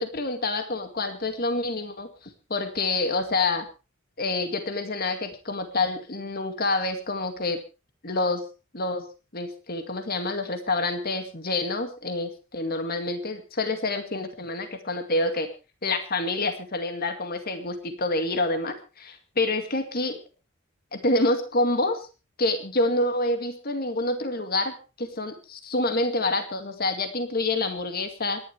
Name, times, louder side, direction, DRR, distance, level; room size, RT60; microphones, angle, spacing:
voice 1, 0.0-3.7 4.2-7.6 8.0-8.4 8.7-9.1 9.3-15.5 15.8-20.2 20.9-22.1 22.4-28.4, left 2 dB, 45° left, 7 dB, 2.2 m, -27 dB
27.0 x 11.5 x 3.4 m, 0.32 s
head